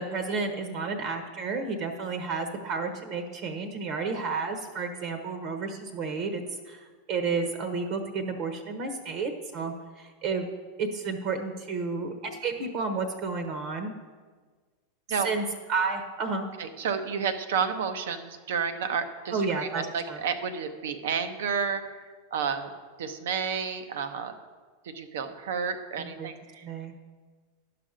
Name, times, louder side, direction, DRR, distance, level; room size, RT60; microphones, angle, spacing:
voice 1, 0.0-6.8 7.1-10.5 10.8-13.9 15.2-15.4 15.7-16.5 19.3-20.2 26.0-26.3 26.6-26.9, right 4 dB, 50° right, 6 dB, 1.1 m, -31 dB
voice 2, 16.6-22.0 22.3-22.7 23.0-24.3 24.8-26.7, right 6 dB, 75° right, 9 dB, 0.8 m, -31 dB
11.0 x 5.9 x 5.1 m, 1.4 s
hypercardioid pair, 100°, 0 cm